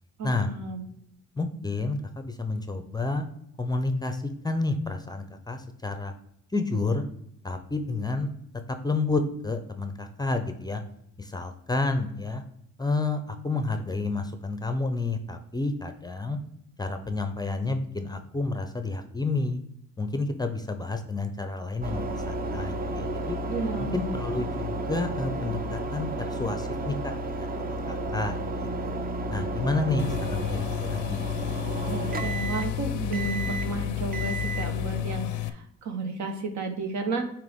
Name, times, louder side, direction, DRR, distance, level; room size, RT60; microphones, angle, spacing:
voice 1, 0.2-0.9 23.5-24.0 31.9-37.2, right 3 dB, 65° right, 5 dB, 1.1 m, -32 dB
voice 2, 1.4-3.2 3.6-6.1 6.5-7.0 7.4-8.3 8.7-10.8 11.2-12.4 12.8-16.4 16.8-19.6 20.0-23.4 23.8-29.0 29.3-31.2, left 3 dB, 15° left, 8 dB, 0.5 m, -30 dB
sound 1, 21.8-35.0, right 1 dB, 30° right, 0.6 m, -32 dB
sound 2, 30.0-35.5, left 16 dB, 85° left, 0.5 m, -32 dB
9.0 x 3.0 x 3.5 m, 0.76 s
cardioid pair, 90°, 30 cm